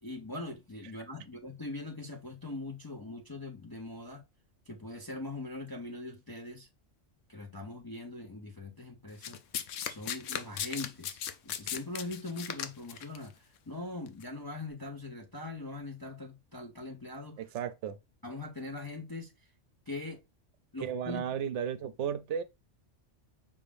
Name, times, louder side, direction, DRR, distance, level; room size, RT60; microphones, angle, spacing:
voice 1, 0.0-4.2 4.7-6.7 7.3-9.4 9.9-17.4 18.2-19.5 19.9-20.2 20.7-21.3, left 2 dB, 30° left, 0.4 m, -41 dB
Domestic sounds home sounds, 9.2-13.2 14.1-14.2, left 9 dB, 90° left, 1.0 m, -37 dB
voice 2, 17.4-18.0 20.8-22.4, right 8 dB, 75° right, 0.9 m, -34 dB
5.3 x 2.5 x 3.3 m
omnidirectional pair, 1.2 m